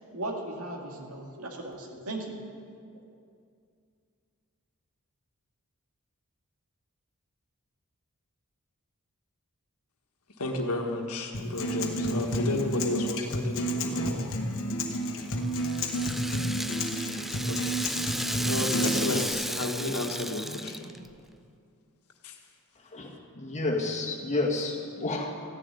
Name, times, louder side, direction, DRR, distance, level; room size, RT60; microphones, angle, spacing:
voice 1, 0.1-2.4, right 2 dB, 75° right, 1 dB, 2.2 m, -37 dB
voice 2, 10.4-14.4 17.5-17.7 18.1-18.2 18.4-20.9 22.2-22.4, left 2 dB, 80° left, 3 dB, 1.6 m, -32 dB
Acoustic guitar, 11.3-19.3, equal, 60° left, 1.3 m, -30 dB
Rattle (instrument), 14.9-21.1, equal, ahead, 0.3 m, -34 dB
voice 3, 22.8-25.4, left 2 dB, 30° left, 0 dB, 1.8 m, -31 dB
14.0 x 7.3 x 9.8 m, 2.3 s
head